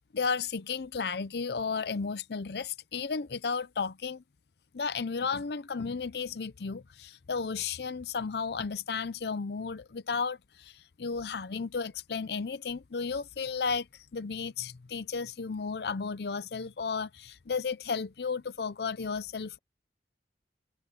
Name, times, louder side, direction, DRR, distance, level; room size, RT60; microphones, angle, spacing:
voice 1, 0.1-4.2 4.7-19.6, left 5 dB, 65° left, 0.6 m, -33 dB
head